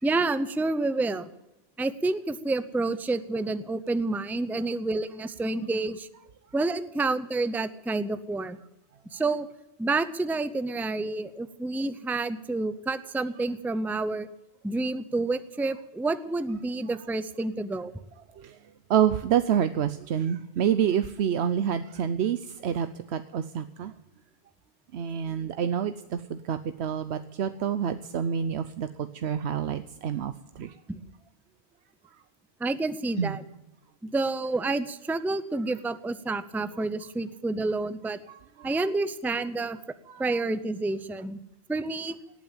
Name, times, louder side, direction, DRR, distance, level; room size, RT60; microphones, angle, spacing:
voice 1, 0.0-1.3 1.8-6.1 6.5-8.6 9.1-9.5 9.8-14.3 14.6-17.9 30.9-31.0 32.6-33.4 34.1-38.2 38.6-39.8 40.2-41.4 41.7-42.2, right 3 dB, ahead, 13 dB, 0.6 m, -29 dB
voice 2, 18.9-23.9 24.9-30.7 33.2-33.4 38.3-38.7 40.1-40.4, right 8 dB, 90° right, 11 dB, 1.0 m, -28 dB
18.0 x 9.2 x 8.9 m, 0.92 s
omnidirectional pair, 1.1 m